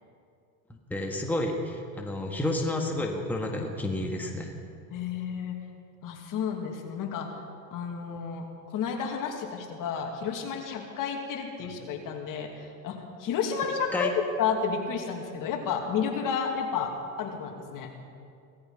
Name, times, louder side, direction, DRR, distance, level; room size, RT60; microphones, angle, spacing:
voice 1, 0.7-4.5 13.9-14.1, left 1 dB, 5° left, 1 dB, 1.7 m, -30 dB
voice 2, 4.9-5.5 6.0-7.3 7.7-14.1 14.4-17.9, left 6 dB, 50° left, 3 dB, 2.6 m, -31 dB
17.5 x 14.5 x 5.8 m, 2.4 s
supercardioid pair, 105°, 43 cm